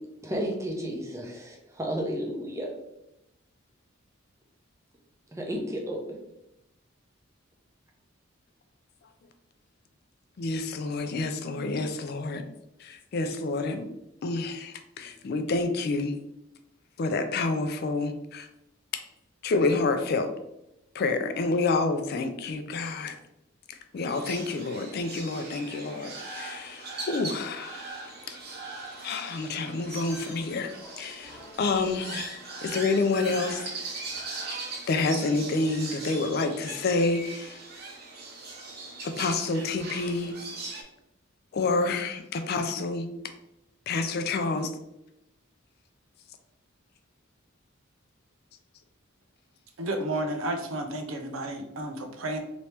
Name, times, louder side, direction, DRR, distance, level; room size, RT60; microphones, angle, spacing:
voice 1, 0.2-2.7 5.3-6.0, equal, 15° right, 0 dB, 0.6 m, -32 dB
voice 2, 10.4-12.4 12.8-13.9 14.2-16.1 17.0-18.5 19.4-20.3 20.9-23.2 23.7-27.8 28.3-28.4 29.0-30.7 31.0-33.6 34.9-37.6 39.0-40.4 41.5-43.1 43.9-44.7, left 3 dB, 50° left, 7 dB, 0.4 m, -28 dB
sound 1, 24.1-40.8, right 3 dB, 50° right, 0.7 m, -40 dB
sound 2, 27.9-36.3, right 1 dB, 5° left, 0.9 m, -50 dB
voice 3, 49.8-52.4, right 1 dB, 85° right, 5 dB, 0.6 m, -32 dB
3.0 x 2.8 x 3.3 m, 0.86 s
head